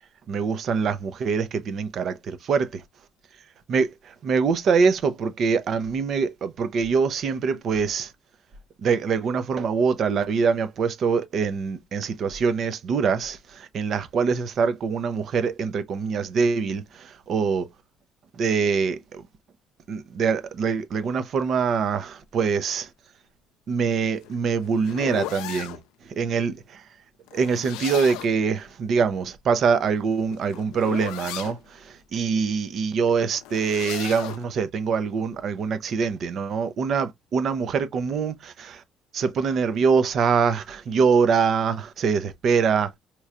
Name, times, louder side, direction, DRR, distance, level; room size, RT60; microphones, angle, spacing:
voice 1, 0.3-2.8 3.7-8.1 8.8-17.7 18.3-19.2 19.9-22.9 23.7-25.8 26.2-26.8 27.3-38.8 39.1-42.9, right 5 dB, 50° right, 0.7 m, -24 dB
sound 1, 24.0-25.8 27.3-28.4 29.9-31.6 33.3-34.4, left 14 dB, 90° left, 0.4 m, -36 dB
4.3 x 3.0 x 2.4 m
cardioid pair, 120°, 0 cm